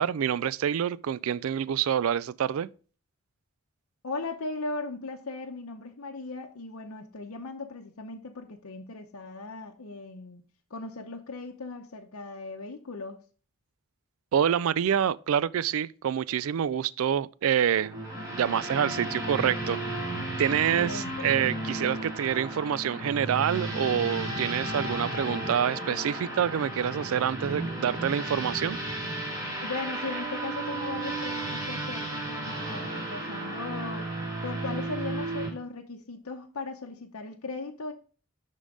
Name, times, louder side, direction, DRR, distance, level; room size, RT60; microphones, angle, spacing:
voice 1, 0.0-2.7 14.3-17.9 18.3-19.8 20.4-28.8, right 9 dB, 70° right, 0.3 m, -27 dB
voice 2, 4.0-10.4 10.7-13.2 20.5-21.3 29.6-34.1 34.4-37.9, left 3 dB, 85° left, 0.8 m, -38 dB
sound 1, 17.8-35.5, right 1 dB, 15° right, 2.8 m, -34 dB
11.0 x 3.8 x 3.7 m
head